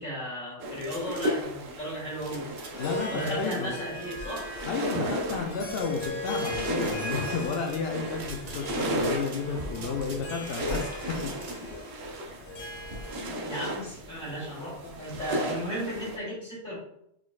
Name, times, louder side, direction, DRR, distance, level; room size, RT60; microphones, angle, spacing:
voice 1, 0.0-2.5 3.1-4.6 9.5-10.0 13.4-16.8, equal, 55° left, -7 dB, 2.1 m, -35 dB
sound 1, 0.6-16.2, equal, 80° right, 1.1 m, -35 dB
sound 2, 0.8-1.3 2.2-2.7 3.2-3.6 4.0-4.5 4.8-5.4 5.7-6.5 6.8-7.0 7.4-7.8 8.2-8.7 8.9-9.4 9.7-10.9 11.1-11.6, right 4 dB, 50° right, 0.6 m, -46 dB
Harp, 2.6-13.5, left 2 dB, 90° left, 1.3 m, -39 dB
voice 2, 2.8-3.7 4.6-11.2, left 5 dB, 70° left, 3 dB, 0.8 m, -32 dB
4.6 x 4.1 x 2.3 m, 0.75 s
omnidirectional pair, 1.0 m